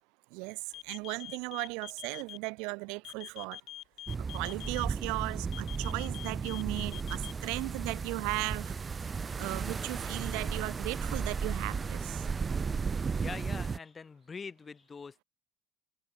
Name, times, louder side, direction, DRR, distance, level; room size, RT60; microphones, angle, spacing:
voice 1, 0.3-3.6 4.3-8.7 9.4-12.2, right 31 dB, 90° right, 1.1 m, -36 dB
sound 1, 0.7-2.4 3.1-4.9 5.5-7.3, left 14 dB, 50° left, 0.9 m, -45 dB
sound 2, 4.1-13.8, right 5 dB, 20° right, 0.6 m, -35 dB
voice 2, 13.2-15.2, left 5 dB, 20° left, 0.8 m, -44 dB
cardioid pair, 175°, 0 cm